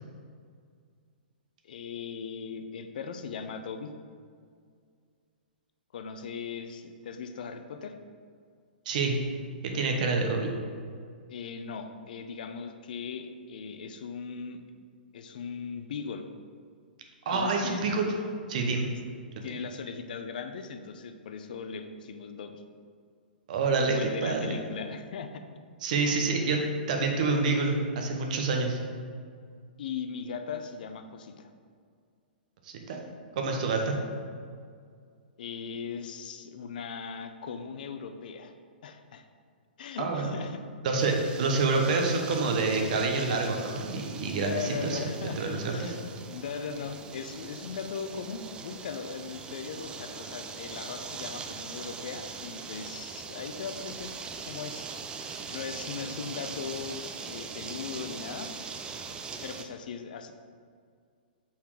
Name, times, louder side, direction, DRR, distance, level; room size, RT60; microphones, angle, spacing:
voice 1, 1.6-3.9 5.9-8.0 11.3-14.6 15.1-16.3 17.3-17.8 19.4-22.6 23.7-25.4 29.8-31.5 35.4-38.5 38.8-39.3 39.8-40.6 41.9-42.1 44.3-45.4 45.7-54.9 55.5-57.0 57.3-58.5 59.4-60.3, left 6 dB, 60° left, 7 dB, 0.6 m, -38 dB
voice 2, 9.7-10.5 17.2-18.1 18.5-18.9 23.5-24.5 25.8-26.6 26.9-28.8 32.6-33.0 33.4-34.0 40.0-40.3 40.8-45.0 45.4-45.9, right 3 dB, 50° right, 2 dB, 1.0 m, -27 dB
sound 1, 41.0-59.6, right 5 dB, 15° right, 0.4 m, -41 dB
5.6 x 4.3 x 4.8 m, 2.1 s
figure-of-eight pair, 115°, 5 cm